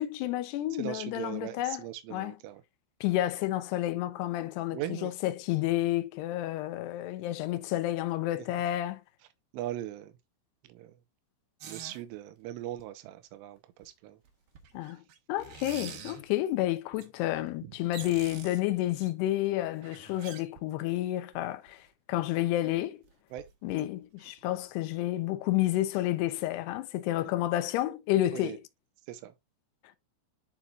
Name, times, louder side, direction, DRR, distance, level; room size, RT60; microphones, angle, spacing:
voice 1, 0.0-1.8 2.1-2.4 3.0-9.0 14.7-15.0 15.3-23.0 23.6-28.6, left 15 dB, 80° left, 2.4 m, -30 dB
voice 2, 0.8-2.6 4.7-5.1 9.5-10.1 10.6-11.0 11.6-14.2 17.6-17.7 23.3-23.5 28.3-28.6 29.1-29.3, right 13 dB, 80° right, 3.3 m, -39 dB
sound 1, 11.6-12.0 12.8-12.9 13.8-13.9 14.3-16.3 16.9-17.1 17.5-17.6 17.8-19.1 19.7-20.9 21.3-21.4 21.7-21.8 22.7-22.8 23.0-23.1 23.4-23.8 24.2-24.7 24.9-25.0, right 7 dB, 65° right, 2.4 m, -46 dB
11.0 x 4.5 x 2.5 m
omnidirectional pair, 5.9 m